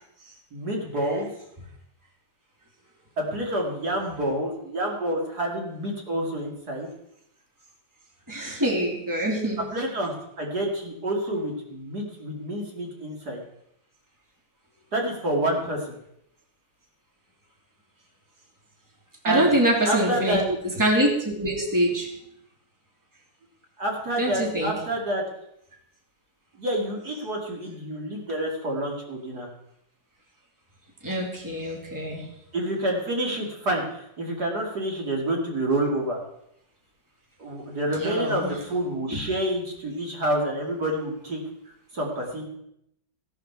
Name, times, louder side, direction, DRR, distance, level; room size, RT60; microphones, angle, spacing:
voice 1, 0.5-1.3 3.2-6.9 9.6-13.4 14.9-15.9 19.2-19.5 19.9-20.4 23.8-25.2 26.6-29.5 32.5-36.2 37.4-41.4 41.9-42.5, right 1 dB, 55° right, -1 dB, 3.0 m, -28 dB
voice 2, 8.3-9.6 19.2-20.4 20.8-22.1 24.2-24.7 31.0-32.2 38.0-38.5 39.1-39.2, right 1 dB, 10° right, -1 dB, 2.8 m, -24 dB
16.5 x 11.5 x 4.7 m, 0.75 s
omnidirectional pair, 2.1 m